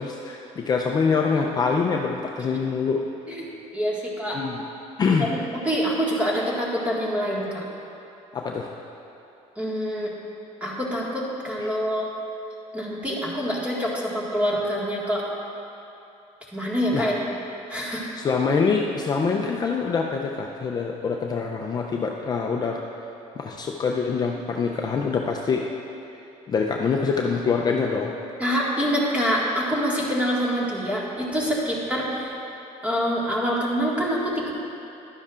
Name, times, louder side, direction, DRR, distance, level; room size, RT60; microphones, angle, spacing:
voice 1, 0.0-3.1 4.3-4.6 5.0-5.3 8.3-8.7 16.9-17.1 18.2-22.8 23.4-25.6 26.5-28.1, left 5 dB, 30° left, 0 dB, 0.5 m, -25 dB
voice 2, 3.7-4.4 5.2-5.4 5.6-7.6 9.5-10.1 10.6-12.1 12.7-15.2 16.5-17.1 17.7-18.2 28.4-32.4 32.8-34.5, equal, 10° right, -5 dB, 1.8 m, -26 dB
12.0 x 9.9 x 2.5 m, 2.9 s
cardioid pair, 130°, 13 cm